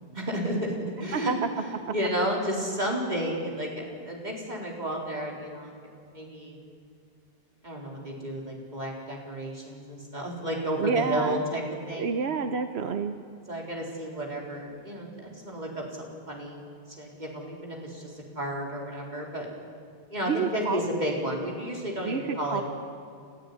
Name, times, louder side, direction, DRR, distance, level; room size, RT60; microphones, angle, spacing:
voice 1, 0.1-5.7 6.1-6.6 7.6-12.2 13.5-16.6 17.0-19.5 20.1-22.6, equal, 45° right, -1 dB, 4.4 m, -32 dB
voice 2, 10.8-11.4 12.0-13.1 20.2-20.8 22.0-22.6, right 5 dB, 85° right, 8 dB, 1.2 m, -28 dB
29.5 x 14.0 x 9.8 m, 2.3 s
omnidirectional pair, 1.1 m